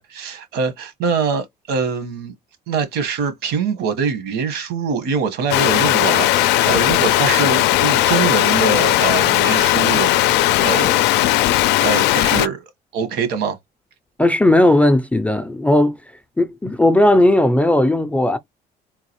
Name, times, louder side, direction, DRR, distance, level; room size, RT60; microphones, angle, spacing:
voice 1, 0.0-2.3 2.7-11.0 11.8-12.6 12.9-13.6, right 5 dB, 85° right, 1.2 m, -23 dB
sound 1, 5.5-12.5, left 15 dB, 90° left, 0.4 m, -17 dB
voice 2, 14.2-16.0 16.4-18.4, left 1 dB, 10° left, 0.4 m, -15 dB
3.8 x 2.4 x 3.0 m
cardioid pair, 110°, 17 cm